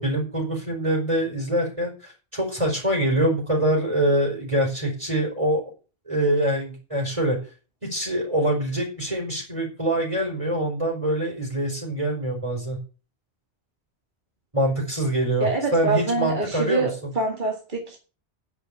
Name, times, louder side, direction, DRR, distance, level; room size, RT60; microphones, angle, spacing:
voice 1, 0.0-5.6 6.1-7.4 7.8-12.8 14.5-16.9, right 1 dB, 30° right, 4.5 m, -24 dB
voice 2, 15.4-18.0, right 3 dB, 45° right, 2.2 m, -25 dB
10.0 x 6.1 x 8.2 m
omnidirectional pair, 1.1 m